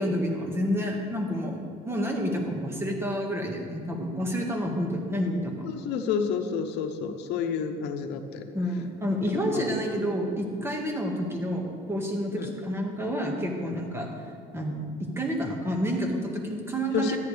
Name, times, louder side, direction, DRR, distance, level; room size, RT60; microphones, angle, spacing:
voice 1, 0.0-1.6 1.8-5.7 8.5-14.1 14.5-17.2, equal, 15° right, 1 dB, 1.8 m, -29 dB
voice 2, 5.6-8.4 9.4-9.7 12.4-12.5 16.9-17.2, left 6 dB, 85° left, 6 dB, 0.9 m, -30 dB
13.5 x 10.5 x 3.4 m, 2.2 s
cardioid pair, 110°, 17 cm